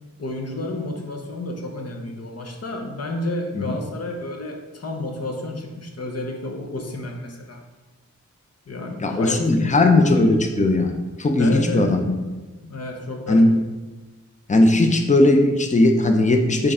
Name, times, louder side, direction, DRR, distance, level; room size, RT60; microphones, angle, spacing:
voice 1, 0.2-7.6 8.7-9.9 10.1-10.3 11.4-12.0 12.6-13.5, left 2 dB, 55° left, 2 dB, 1.1 m, -31 dB
voice 2, 9.0-10.9 11.2-12.1 13.3-13.6 14.5-16.7, left 2 dB, 25° left, 4 dB, 0.7 m, -18 dB
8.3 x 3.4 x 3.7 m, 1.2 s
wide cardioid pair, 90°, 30 cm